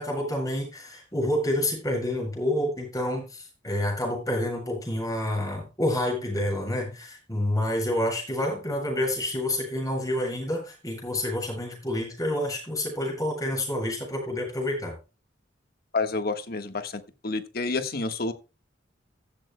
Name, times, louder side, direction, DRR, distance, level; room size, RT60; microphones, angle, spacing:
voice 1, 0.0-15.0, left 1 dB, 20° left, 0 dB, 7.9 m, -28 dB
voice 2, 15.9-18.3, left 3 dB, 55° left, 8 dB, 1.4 m, -29 dB
15.0 x 12.5 x 2.2 m, 0.30 s
head